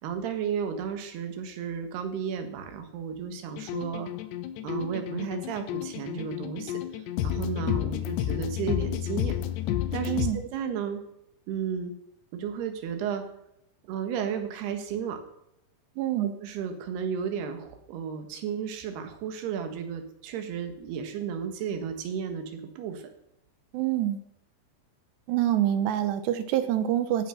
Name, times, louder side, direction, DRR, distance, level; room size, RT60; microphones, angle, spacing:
voice 1, 0.0-4.1 4.6-9.3 9.9-11.0 11.5-11.9 12.3-13.2 13.8-15.2 16.2-23.1, right 7 dB, 75° right, 7 dB, 3.5 m, -33 dB
sound 1, 3.6-10.3, left 12 dB, 85° left, 3.1 m, -31 dB
voice 2, 10.1-10.4 16.0-16.4 23.7-24.2 25.3-27.3, right 12 dB, 90° right, 11 dB, 3.2 m, -26 dB
16.5 x 9.7 x 5.8 m, 0.80 s
omnidirectional pair, 4.9 m